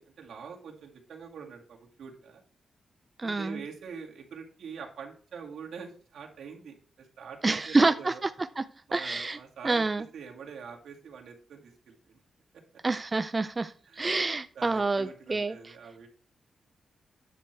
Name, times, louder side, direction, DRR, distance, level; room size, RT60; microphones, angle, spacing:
voice 1, 0.0-2.4 3.2-8.2 8.9-12.2 12.7-12.8 13.9-14.2 14.5-16.1, right 6 dB, 80° right, 0 dB, 2.2 m, -44 dB
voice 2, 3.2-3.6 7.4-8.3 8.6-8.7 8.9-9.4 9.6-10.0 12.8-15.6, right 3 dB, 20° right, 10 dB, 0.3 m, -27 dB
10.0 x 6.5 x 4.5 m, 0.43 s
wide cardioid pair, 175°, 0 cm